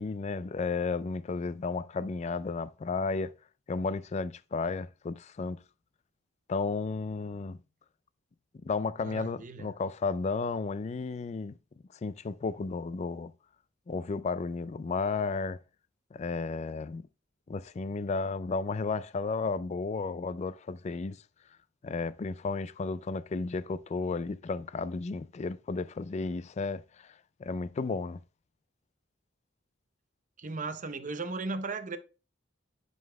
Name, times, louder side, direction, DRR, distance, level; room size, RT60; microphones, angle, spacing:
voice 1, 0.0-3.3 3.7-5.6 6.5-7.6 8.6-11.5 12.0-13.3 13.9-15.6 16.1-17.0 17.5-21.2 21.8-26.8 27.4-28.2, left 4 dB, 35° left, 0.3 m, -33 dB
voice 2, 9.0-9.7 30.4-32.0, right 3 dB, 40° right, 0.7 m, -36 dB
11.0 x 5.3 x 2.2 m
head